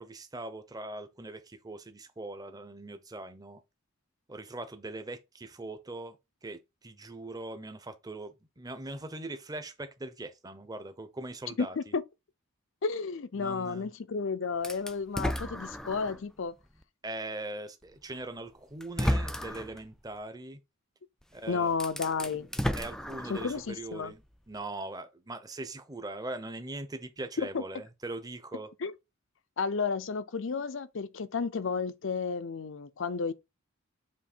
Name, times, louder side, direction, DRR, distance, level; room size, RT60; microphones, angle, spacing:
voice 1, 0.0-3.6 4.3-6.2 6.4-11.8 13.4-13.9 17.0-20.6 21.3-21.7 22.8-28.7, right 2 dB, 15° right, 0.7 m, -41 dB
voice 2, 11.6-12.0 12.8-16.5 21.5-22.5 23.3-24.1 27.4-27.6 28.8-28.9 29.6-33.3, left 5 dB, 60° left, 0.5 m, -32 dB
sound 1, 14.6-16.3 16.8-16.9 18.1-18.2 18.8-19.8 21.2-21.3 21.7-23.7, equal, 5° left, 0.4 m, -33 dB
7.4 x 3.2 x 4.3 m
head